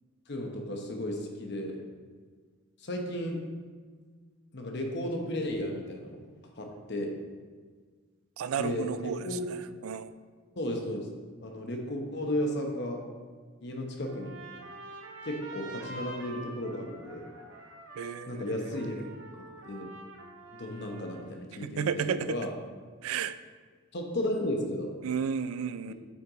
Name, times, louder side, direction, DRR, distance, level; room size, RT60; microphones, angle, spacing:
voice 1, 0.3-1.8 2.8-3.4 4.5-6.2 6.6-7.2 8.6-9.5 10.6-11.1 11.4-13.0 13.6-14.4 15.2-17.2 18.3-19.1 19.6-19.9 20.5-22.5 23.9-24.9, left 1 dB, 55° left, 2 dB, 1.0 m, -34 dB
voice 2, 8.4-9.3 9.8-10.1 18.0-18.8 21.6-22.4 23.0-23.4 25.0-25.9, right 7 dB, 90° right, 13 dB, 0.3 m, -32 dB
Trumpet, 14.0-21.4, right 2 dB, 65° right, 1.0 m, -46 dB
8.3 x 4.6 x 4.0 m, 1.6 s
head